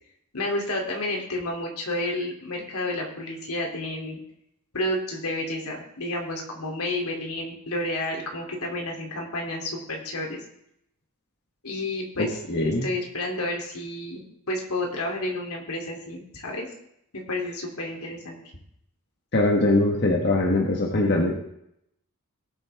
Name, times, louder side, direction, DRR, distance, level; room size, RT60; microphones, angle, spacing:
voice 1, 0.3-4.2 4.7-10.4 11.6-14.2 14.5-16.7 17.1-18.4, left 1 dB, 80° left, 0 dB, 3.0 m, -30 dB
voice 2, 12.2-12.9 19.3-21.4, left 2 dB, 50° left, 0 dB, 1.4 m, -22 dB
18.5 x 8.0 x 3.5 m, 0.75 s
head